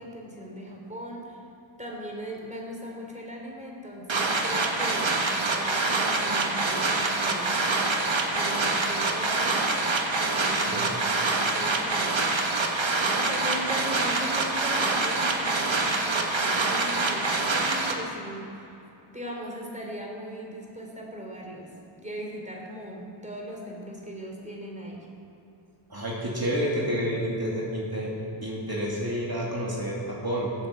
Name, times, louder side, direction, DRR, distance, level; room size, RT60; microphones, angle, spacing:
voice 1, 0.0-1.4 1.8-7.9 8.3-9.7 10.1-11.1 11.4-12.4 13.1-18.8 19.1-25.1, equal, 15° right, -1 dB, 4.0 m, -38 dB
sound 1, 4.1-17.9, right 3 dB, 70° right, 1.6 m, -26 dB
voice 2, 10.5-10.9 25.9-28.1 28.4-30.5, equal, 50° right, -5 dB, 2.8 m, -29 dB
16.0 x 8.2 x 7.5 m, 2.9 s
wide cardioid pair, 45°, 48 cm